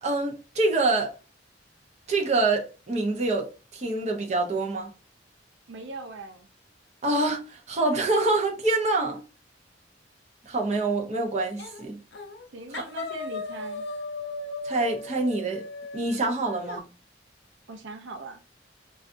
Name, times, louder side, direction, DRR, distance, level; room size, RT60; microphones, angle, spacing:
voice 1, 0.0-1.1 2.1-4.9 7.0-9.2 10.4-12.0 12.7-12.8 14.6-15.6 15.9-16.9, right 2 dB, 40° right, 0.7 m, -26 dB
voice 2, 5.7-6.5 12.5-13.8 17.7-18.4, right 3 dB, 85° right, 0.5 m, -40 dB
sound 1, 11.6-11.8 12.1-12.5 12.7-16.8, left 2 dB, 65° left, 0.5 m, -37 dB
4.0 x 2.4 x 2.5 m
head